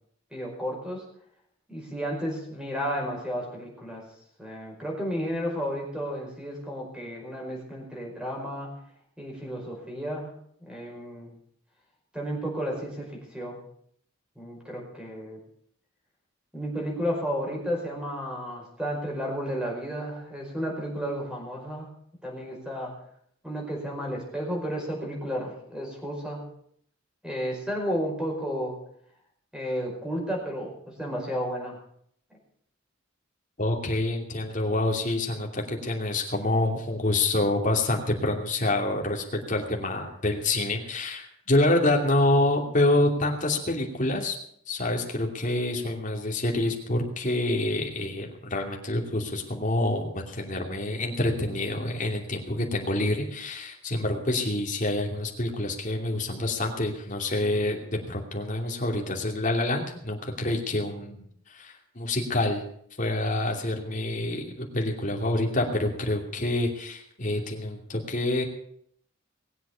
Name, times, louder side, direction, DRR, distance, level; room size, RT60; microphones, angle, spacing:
voice 1, 0.3-1.0 1.7-4.0 4.4-8.7 9.2-10.3 10.7-11.3 12.1-13.6 14.4-15.4 16.5-21.9 22.2-22.9 23.4-26.4 27.2-28.8 29.5-31.8, equal, 5° right, -1 dB, 5.2 m, -32 dB
voice 2, 33.6-44.4 44.7-57.8 58.1-61.2 61.5-62.6 63.0-68.4, left 2 dB, 40° left, 1 dB, 2.8 m, -27 dB
20.5 x 8.1 x 7.0 m, 0.68 s
head